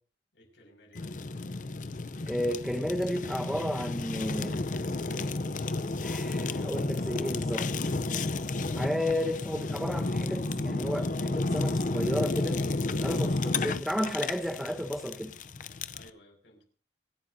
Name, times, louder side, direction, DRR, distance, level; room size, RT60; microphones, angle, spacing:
voice 1, 0.3-1.1 13.0-13.7 15.9-16.7, left 2 dB, 85° left, 3 dB, 5.9 m, -54 dB
Fire, 0.9-16.1, left 2 dB, 45° left, 0.6 m, -32 dB
voice 2, 2.2-4.6 6.0-7.9 8.8-12.6 12.9-15.3, equal, ahead, 5 dB, 0.9 m, -32 dB
27.0 x 12.0 x 2.7 m, 0.40 s
head